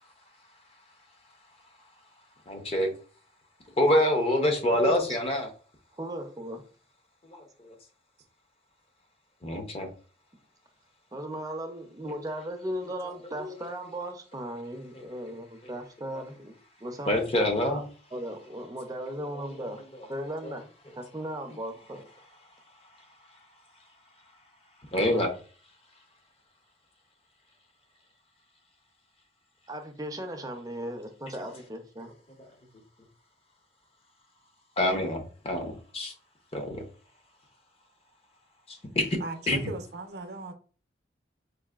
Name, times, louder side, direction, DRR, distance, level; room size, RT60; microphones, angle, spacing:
voice 1, 2.5-2.9 3.8-5.5 7.3-7.7 9.4-9.9 14.9-15.0 17.1-17.9 19.3-19.4 20.4-20.5 24.9-25.3 34.8-36.1 36.5-36.8 38.7-39.2 39.5-39.6, left 1 dB, 35° left, 0.7 m, -26 dB
voice 2, 4.7-5.2 6.0-6.6 11.1-16.5 16.8-17.2 17.7-17.8 18.1-19.8 20.1-20.6 21.0-22.0 29.7-32.1, right 1 dB, 20° right, 0.5 m, -37 dB
voice 3, 39.2-40.5, right 3 dB, 65° right, 0.6 m, -38 dB
4.7 x 2.5 x 2.3 m
head